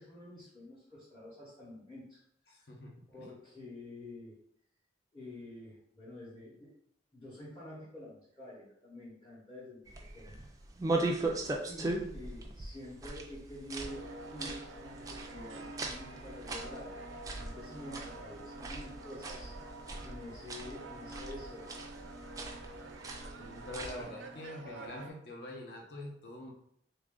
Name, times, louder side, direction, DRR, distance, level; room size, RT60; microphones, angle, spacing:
voice 1, 0.0-2.2 2.6-2.7 3.1-4.4 5.1-6.7 7.1-10.4 11.7-16.9 17.3-19.6 20.0-21.7, left 1 dB, 20° left, -8 dB, 0.8 m, -48 dB
voice 2, 2.5-3.3 23.4-26.5, left 1 dB, 55° left, 0 dB, 0.7 m, -45 dB
sound 1, 9.9-24.1, right 2 dB, 20° right, 0.3 m, -39 dB
sound 2, 13.8-25.1, right 2 dB, 85° right, 0.4 m, -48 dB
3.3 x 2.5 x 3.6 m, 0.70 s
head